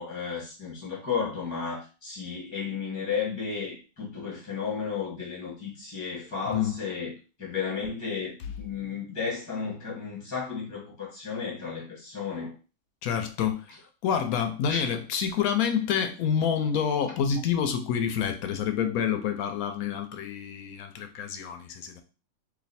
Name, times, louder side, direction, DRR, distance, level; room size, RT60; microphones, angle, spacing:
voice 1, 0.0-7.1 7.4-12.5 14.7-14.8, left 6 dB, 15° left, 1.3 m, -33 dB
voice 2, 6.5-6.8 8.4-8.5 13.0-13.6 14.0-22.0, left 8 dB, 80° left, 1.1 m, -28 dB
3.2 x 2.7 x 4.1 m
omnidirectional pair, 1.5 m